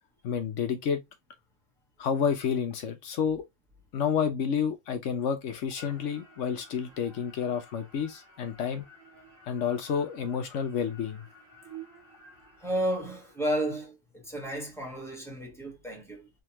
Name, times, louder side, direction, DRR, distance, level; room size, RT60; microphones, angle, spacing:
voice 1, 0.2-1.0 2.0-3.4 3.9-8.8 9.5-11.3, left 7 dB, 70° left, 1.0 m, -30 dB
sound 1, 5.7-13.8, right 3 dB, 70° right, 1.7 m, -52 dB
voice 2, 12.6-16.3, right 1 dB, ahead, 1.1 m, -32 dB
3.5 x 2.8 x 2.8 m
omnidirectional pair, 1.4 m